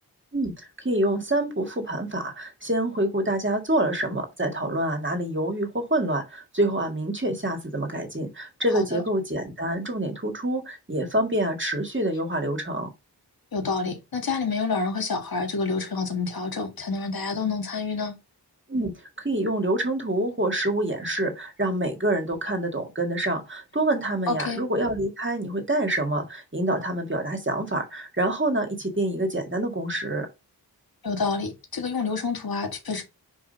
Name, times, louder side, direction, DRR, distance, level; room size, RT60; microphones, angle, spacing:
voice 1, 0.3-12.9 18.7-18.9 19.2-30.3, right 1 dB, 30° right, 1.9 m, -26 dB
voice 2, 13.5-18.2 24.3-24.6 31.0-33.0, left 4 dB, 60° left, 1.5 m, -28 dB
5.0 x 4.7 x 4.0 m
wide cardioid pair, 75°, 40 cm